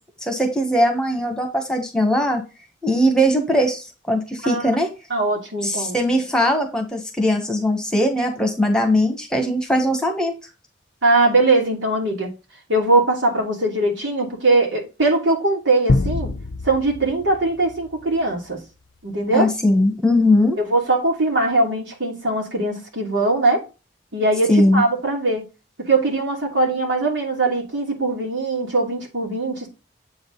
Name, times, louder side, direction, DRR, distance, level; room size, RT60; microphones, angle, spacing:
voice 1, 0.2-2.4 2.8-4.9 5.6-10.3 19.3-20.6 24.5-24.8, left 1 dB, 5° left, 1.3 m, -20 dB
voice 2, 5.1-6.0 11.0-12.3 12.7-16.3 16.6-18.6 19.0-19.5 20.6-23.6 24.1-25.4 25.9-29.7, right 2 dB, 80° right, 2.8 m, -21 dB
sound 1, 15.9-18.4, left 3 dB, 80° left, 0.6 m, -25 dB
8.0 x 3.9 x 3.9 m
head